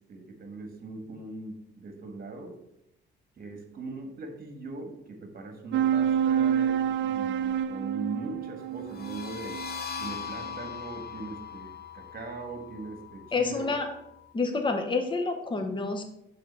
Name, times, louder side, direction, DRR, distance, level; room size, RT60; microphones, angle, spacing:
voice 1, 0.0-2.5 3.3-9.6 10.0-13.7, right 3 dB, 50° right, 5 dB, 1.6 m, -40 dB
sound 1, 5.7-10.5, right 9 dB, 65° right, 0.5 m, -28 dB
sound 2, 8.8-14.3, left 8 dB, 50° left, 1.1 m, -41 dB
voice 2, 13.3-13.9 14.3-16.0, left 3 dB, 25° left, 5 dB, 0.9 m, -28 dB
6.6 x 3.9 x 5.6 m, 0.80 s
cardioid pair, 90°, 20 cm